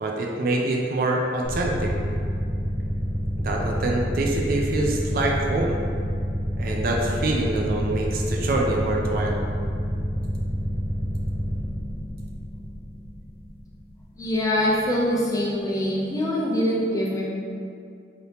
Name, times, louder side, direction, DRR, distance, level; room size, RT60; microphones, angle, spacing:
voice 1, 0.0-1.9 3.4-5.8 6.6-9.4, right 2 dB, 50° right, 0 dB, 0.3 m, -25 dB
sound 1, 1.4-14.7, equal, 55° left, 0.7 m, -28 dB
voice 2, 14.2-17.3, left 1 dB, 20° left, -5 dB, 0.4 m, -24 dB
2.8 x 2.8 x 3.3 m, 2.4 s
head